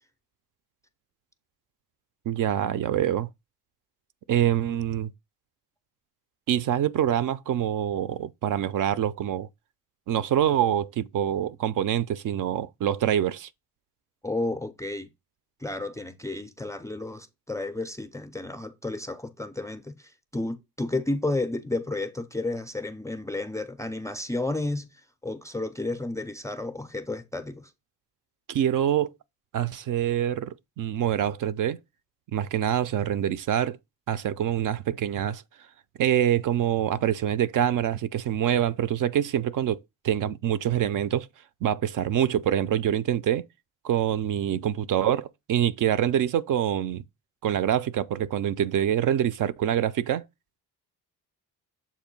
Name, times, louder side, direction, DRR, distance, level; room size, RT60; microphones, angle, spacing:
voice 1, 2.3-3.3 4.3-5.1 6.5-9.5 10.1-13.5 28.5-29.1 29.5-31.8 32.3-33.8 34.1-35.4 36.0-39.8 40.0-41.3 41.6-43.5 43.8-47.0 47.4-50.2, right 10 dB, 55° right, 0.5 m, -25 dB
voice 2, 14.2-15.1 15.6-24.9 25.2-27.7, left 2 dB, 10° left, 0.4 m, -32 dB
7.2 x 2.6 x 5.2 m
cardioid pair, 150°, 39 cm